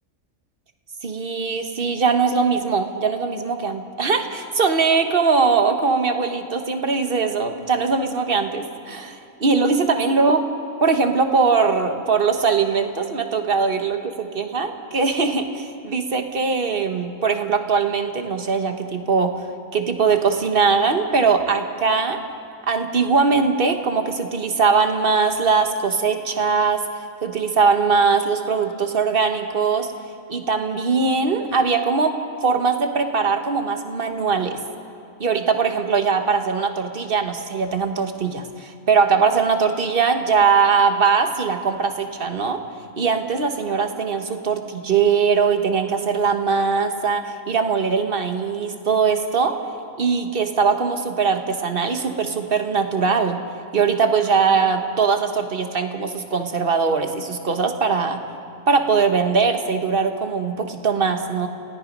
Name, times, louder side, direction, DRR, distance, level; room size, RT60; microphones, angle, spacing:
voice 1, 1.0-10.4 10.8-19.3 19.7-22.2 22.7-29.9 30.3-32.1 32.4-34.6 35.2-42.6 43.0-49.5 50.0-53.4 53.7-58.2 58.7-61.5, right 5 dB, 45° right, 6 dB, 1.4 m, -21 dB
30.0 x 17.0 x 5.4 m, 2.5 s
omnidirectional pair, 1.3 m